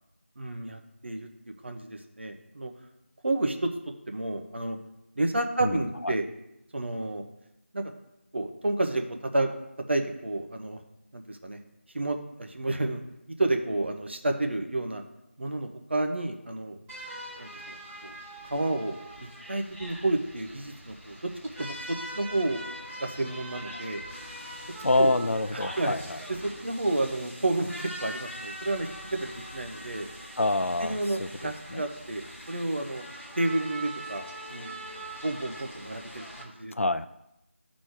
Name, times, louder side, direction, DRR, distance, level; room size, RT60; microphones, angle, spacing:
voice 1, 0.4-1.3 1.6-2.7 3.2-3.7 4.1-4.8 5.2-6.2 6.7-7.2 7.7-7.9 8.3-9.5 9.9-10.8 11.1-11.6 11.9-13.0 13.4-15.0 15.4-16.8 17.4-17.8 18.0-18.2 18.4-18.9 19.2-21.2 21.6-21.8 22.1-22.7 23.0-24.0 25.0-25.2 25.5-26.0 26.6-30.1 30.8-33.0 33.4-34.7 35.2-36.7, right 2 dB, 55° right, 5 dB, 1.0 m, -30 dB
voice 2, 5.6-6.1 24.8-26.2 30.4-31.3 31.7-31.8 36.7-37.1, left 2 dB, 80° left, 13 dB, 0.5 m, -26 dB
sound 1, 16.9-36.4, right 1 dB, 5° right, 1.0 m, -42 dB
12.0 x 4.2 x 4.7 m, 0.88 s
figure-of-eight pair, 170°, 7 cm